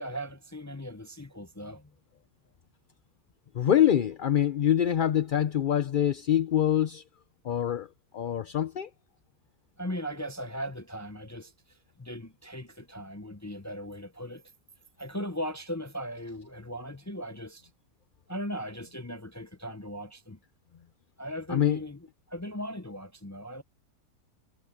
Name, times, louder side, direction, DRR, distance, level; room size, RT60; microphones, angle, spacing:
voice 1, 0.0-1.9 9.8-11.5 12.0-14.4 15.0-17.7 18.3-20.4 21.2-22.0 22.3-23.6, equal, 30° left, 0.3 m, -38 dB
voice 2, 3.5-7.0 7.4-7.9 8.1-8.9 21.5-21.8, left 10 dB, 50° left, 0.7 m, -25 dB
omnidirectional pair, 1.5 m